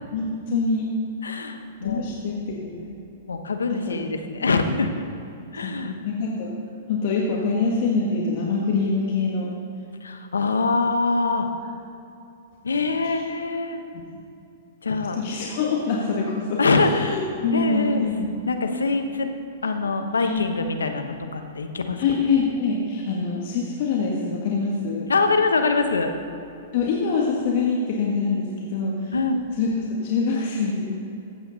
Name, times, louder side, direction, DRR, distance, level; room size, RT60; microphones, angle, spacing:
voice 1, 0.1-0.9 1.8-3.0 3.7-4.0 5.6-6.5 6.9-9.5 13.0-13.2 14.0-14.2 15.1-18.3 20.2-20.4 22.0-25.1 26.7-29.1 29.6-30.9, left 4 dB, 55° left, -2 dB, 1.5 m, -25 dB
voice 2, 1.2-2.0 3.3-4.9 5.5-6.0 10.0-11.5 12.6-13.8 14.8-15.2 16.6-17.2 17.5-18.0 18.5-19.3 19.6-22.0 25.1-26.1 29.1-29.4, left 3 dB, 90° left, 7 dB, 1.0 m, -24 dB
15.0 x 8.0 x 4.0 m, 2.8 s
hypercardioid pair, 115°, 0 cm